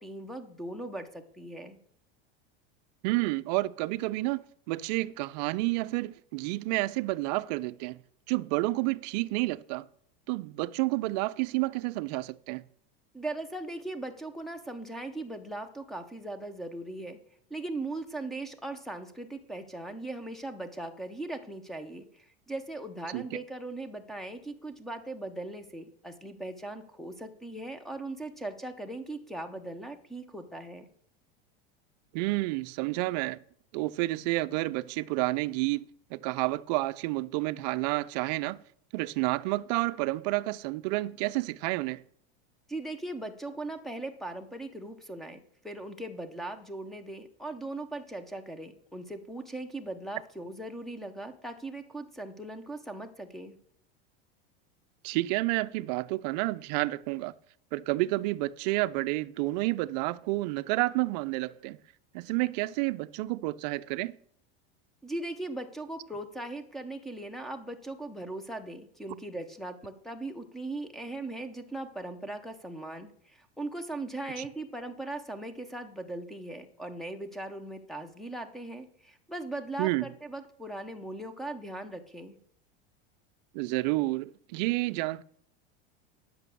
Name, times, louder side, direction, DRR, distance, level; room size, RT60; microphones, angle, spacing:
voice 1, 0.0-1.8 13.1-17.2 17.5-30.9 42.7-53.6 65.0-82.4, right 2 dB, ahead, 0.6 m, -39 dB
voice 2, 3.0-8.0 8.3-9.9 10.3-12.6 23.1-23.2 32.1-33.4 33.7-38.6 38.9-42.0 55.0-57.3 57.7-61.8 62.1-64.2 74.4-74.5 79.8-80.1 83.5-85.2, right 20 dB, 45° right, 0.4 m, -30 dB
10.5 x 6.0 x 6.8 m
supercardioid pair, 165°, 29 cm